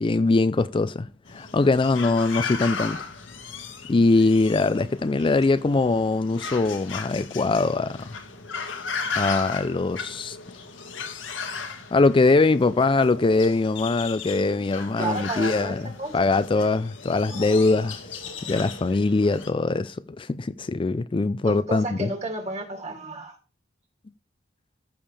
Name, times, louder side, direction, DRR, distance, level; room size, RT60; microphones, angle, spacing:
voice 1, 0.0-3.0 3.9-8.1 9.1-10.4 11.9-22.1, left 3 dB, 25° left, 0.4 m, -22 dB
sound 1, 1.3-19.5, left 5 dB, 85° left, 1.8 m, -36 dB
voice 2, 15.0-16.1 17.3-17.9 18.3-18.5 21.4-23.4, right 2 dB, 35° right, 2.7 m, -33 dB
14.5 x 7.0 x 3.4 m
head